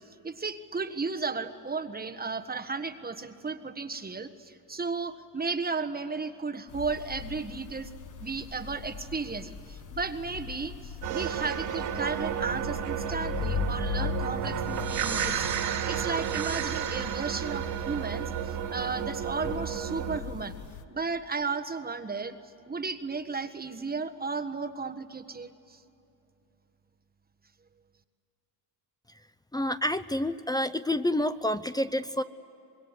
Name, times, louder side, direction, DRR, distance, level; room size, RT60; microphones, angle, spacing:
voice 1, 0.2-7.9 8.2-18.3 18.7-20.5 20.9-22.4 22.7-25.5, right 4 dB, 20° right, 7 dB, 1.5 m, -34 dB
sound 1, 6.7-20.8, left 5 dB, 40° left, 1.5 m, -39 dB
sound 2, 11.0-20.2, right 9 dB, 65° right, 2.8 m, -32 dB
voice 2, 29.5-32.2, left 1 dB, 10° left, 13 dB, 0.6 m, -28 dB
25.5 x 21.5 x 9.8 m, 2.7 s
supercardioid pair, 90°, 45 cm